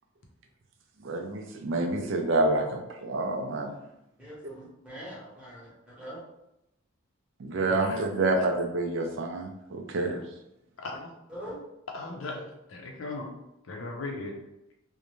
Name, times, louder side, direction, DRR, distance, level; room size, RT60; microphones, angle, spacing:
voice 1, 1.0-3.8 7.4-10.2, right 2 dB, 60° right, 3 dB, 0.4 m, -28 dB
voice 2, 4.2-6.2 11.3-11.6, equal, 5° right, -8 dB, 0.9 m, -43 dB
voice 3, 7.6-8.0 10.8-11.1 11.9-12.4 12.7-13.3 13.7-14.3, left 2 dB, 70° left, 0 dB, 0.6 m, -37 dB
2.6 x 2.1 x 3.0 m, 0.86 s
head